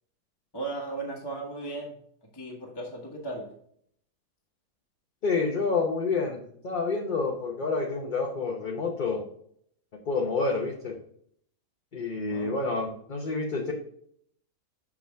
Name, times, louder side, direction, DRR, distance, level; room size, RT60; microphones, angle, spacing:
voice 1, 0.5-2.0 2.3-3.5 12.3-12.5, right 2 dB, 20° left, -2 dB, 1.2 m, -36 dB
voice 2, 5.2-9.2 10.1-11.0 11.9-13.7, left 4 dB, 40° left, 0 dB, 0.9 m, -28 dB
6.0 x 5.9 x 3.4 m, 0.65 s
omnidirectional pair, 1.5 m